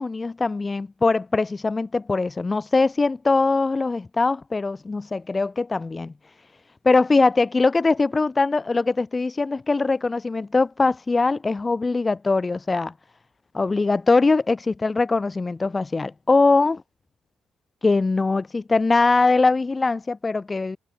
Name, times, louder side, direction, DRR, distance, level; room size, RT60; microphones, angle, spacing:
voice 1, 0.0-6.1 6.8-12.9 13.5-16.8 17.8-20.8, left 3 dB, 25° left, 3.9 m, -21 dB
cardioid pair, 90°, 0 cm